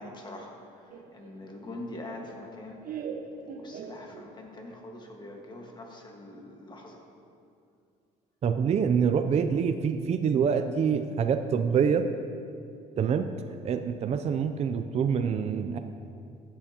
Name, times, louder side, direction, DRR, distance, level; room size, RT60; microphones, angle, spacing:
voice 1, 0.0-2.8 3.5-7.1, left 1 dB, 25° left, 1 dB, 1.6 m, -43 dB
Laughter, 0.9-4.6, right 6 dB, 60° right, 1.1 m, -41 dB
voice 2, 8.4-12.0 13.0-13.3 13.6-15.8, right 7 dB, 40° right, 7 dB, 0.5 m, -26 dB
15.0 x 9.6 x 2.9 m, 2.4 s
cardioid pair, 110°, 17 cm